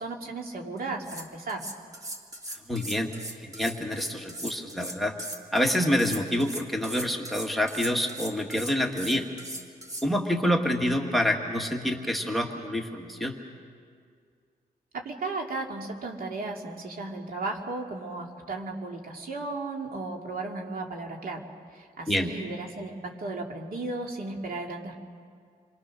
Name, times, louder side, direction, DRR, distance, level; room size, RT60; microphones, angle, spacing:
voice 1, 0.0-1.7 14.9-24.9, right 3 dB, 65° right, 1 dB, 2.8 m, -35 dB
sound 1, 0.8-0.9 1.0-10.1, right 1 dB, 20° right, 2.2 m, -39 dB
voice 2, 2.7-3.1 3.4-5.1 5.5-9.2 10.0-13.4 22.1-22.3, left 1 dB, ahead, 3 dB, 1.8 m, -27 dB
29.0 x 23.5 x 6.4 m, 2.1 s
wide cardioid pair, 125°, 16 cm